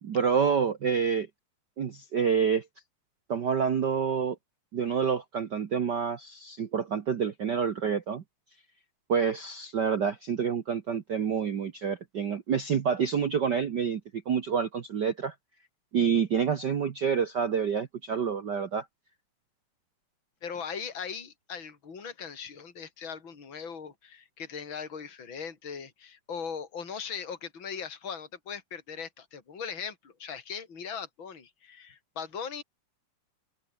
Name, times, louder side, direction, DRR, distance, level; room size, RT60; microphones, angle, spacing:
voice 1, 0.0-1.3 1.8-2.6 3.3-4.4 4.7-8.2 9.1-14.0 14.3-15.3 15.9-18.8, right 7 dB, 60° right, 1.1 m, -28 dB
voice 2, 20.4-32.6, left 6 dB, 40° left, 4.3 m, -39 dB
open air
omnidirectional pair, 3.6 m